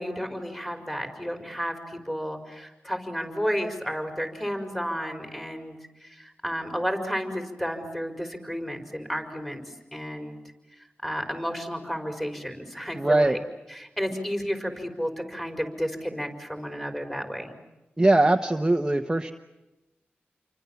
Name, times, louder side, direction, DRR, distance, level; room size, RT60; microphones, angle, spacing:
voice 1, 0.0-5.8 6.0-9.6 9.9-10.4 11.0-13.4 13.7-17.6, equal, 10° left, 5 dB, 4.9 m, -32 dB
voice 2, 13.0-13.4 18.0-19.3, right 2 dB, 15° right, 4 dB, 1.2 m, -21 dB
29.0 x 24.5 x 7.3 m, 1.0 s
wide cardioid pair, 95°, 4 cm